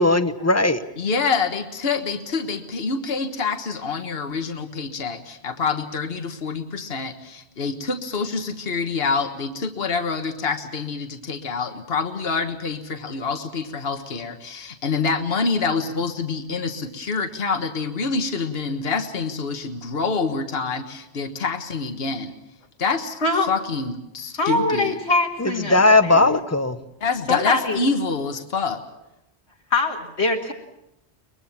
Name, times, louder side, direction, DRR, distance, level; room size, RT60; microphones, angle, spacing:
voice 1, 0.0-0.8 25.4-26.8, left 2 dB, 15° left, 0.9 m, -18 dB
voice 2, 1.0-22.3 22.8-23.2 23.5-24.9 27.0-28.8, left 4 dB, 65° left, 1.6 m, -26 dB
voice 3, 24.4-26.2 27.3-27.8 29.7-30.5, left 2 dB, 80° left, 2.3 m, -23 dB
23.0 x 21.5 x 7.2 m
omnidirectional pair, 1.1 m